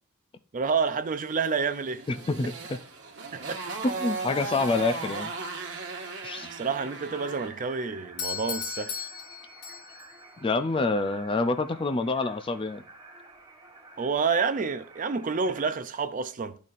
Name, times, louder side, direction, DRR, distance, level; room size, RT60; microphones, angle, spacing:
voice 1, 0.5-2.0 3.3-3.6 6.5-9.0 14.0-16.6, right 5 dB, 35° right, 0.4 m, -28 dB
Motorcycle, 1.5-7.6, right 3 dB, 55° right, 1.3 m, -37 dB
voice 2, 2.1-2.8 3.8-5.3 6.2-6.5 10.4-12.8, left 3 dB, 25° left, 0.4 m, -27 dB
sound 1, 3.8-15.7, right 3 dB, 20° right, 1.2 m, -50 dB
Doorbell, 8.2-10.2, left 7 dB, 75° left, 0.9 m, -36 dB
12.0 x 4.1 x 2.5 m
head